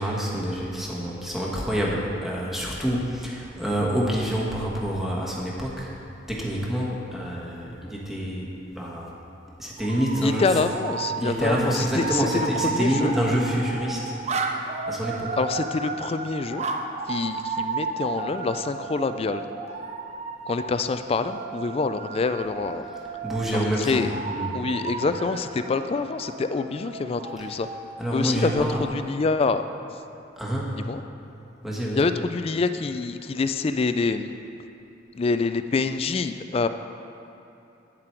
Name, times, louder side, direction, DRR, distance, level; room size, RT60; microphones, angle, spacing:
voice 1, 0.0-5.9 6.3-9.1 9.6-10.6 11.2-14.1 14.9-15.4 23.2-24.6 27.4-27.5 28.0-28.8 30.4-30.8 31.6-32.0, equal, ahead, -5 dB, 1.3 m, -27 dB
sound 1, 9.8-28.7, right 4 dB, 35° right, 0.5 m, -33 dB
voice 2, 10.2-13.1 15.4-16.7 17.1-19.4 20.5-22.8 23.9-24.1 24.5-27.7 28.1-28.7 28.9-29.6 30.7-31.0 32.0-34.3 35.1-36.7, left 4 dB, 30° left, 10 dB, 0.3 m, -26 dB
9.1 x 7.6 x 4.5 m, 2.9 s
head